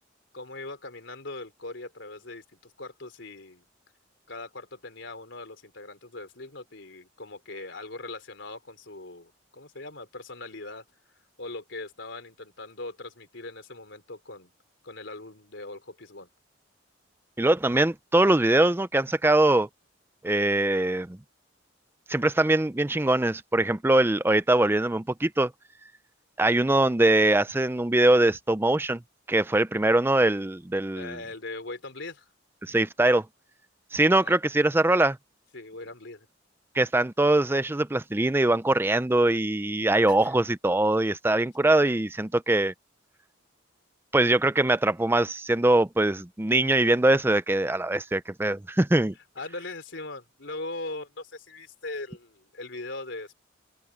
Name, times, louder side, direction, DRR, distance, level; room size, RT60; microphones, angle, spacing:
voice 1, 0.3-3.6 4.3-10.8 11.4-14.5 14.8-16.3 31.0-32.2 34.1-34.4 35.5-36.3 40.1-40.3 49.4-53.4, left 2 dB, 70° left, 3.9 m, -40 dB
voice 2, 17.4-19.7 20.2-21.2 22.1-25.5 26.4-29.0 29.3-31.2 32.6-33.2 33.9-35.2 36.7-42.7 44.1-49.1, right 2 dB, 10° right, 0.5 m, -22 dB
open air
head